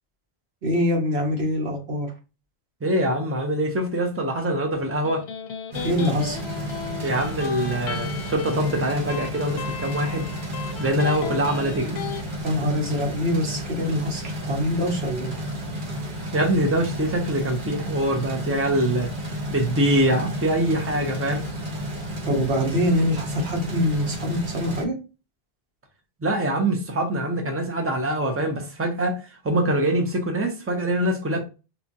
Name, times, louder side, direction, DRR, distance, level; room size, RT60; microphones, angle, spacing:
voice 1, 0.6-2.1 5.8-6.4 12.4-15.3 22.3-24.9, equal, 90° right, 1.3 m, -24 dB
voice 2, 2.8-5.3 7.0-10.3 10.8-12.0 16.3-19.1 19.5-21.5 26.2-31.4, right 1 dB, 15° right, 0.6 m, -24 dB
Electric guitar, 4.8-12.2, left 7 dB, 80° left, 0.8 m, -36 dB
sound 1, 5.7-24.8, equal, 55° right, 1.0 m, -32 dB
4.4 x 2.4 x 2.6 m
omnidirectional pair, 1.0 m